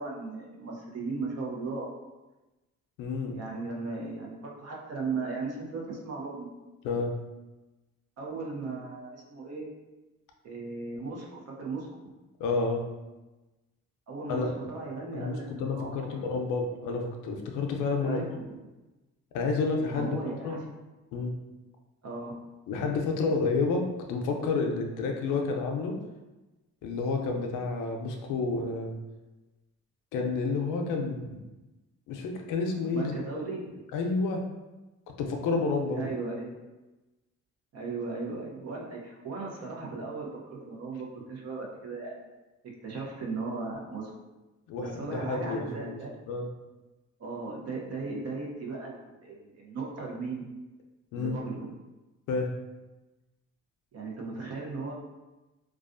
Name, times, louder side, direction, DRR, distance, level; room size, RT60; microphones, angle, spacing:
voice 1, 0.0-1.9 3.3-6.5 8.2-9.7 10.4-11.9 14.1-16.2 18.0-18.6 19.9-20.6 22.0-22.4 32.9-33.8 35.9-36.5 37.7-42.2 42.8-44.1 44.8-46.1 47.2-50.5 51.2-51.7 53.9-54.9, right 3 dB, 55° right, -2 dB, 0.7 m, -37 dB
voice 2, 3.0-3.4 6.8-7.2 12.4-12.8 14.3-14.5 15.1-18.2 19.3-20.2 20.4-20.6 21.1-21.3 22.7-26.0 26.8-28.9 30.1-31.4 32.1-33.1 33.9-34.5 35.2-36.1 44.7-46.0 46.3-46.5 51.1-51.4 52.3-52.5, left 4 dB, 90° left, 2 dB, 0.5 m, -30 dB
2.3 x 2.3 x 2.4 m, 1.1 s
cardioid pair, 90°, 30 cm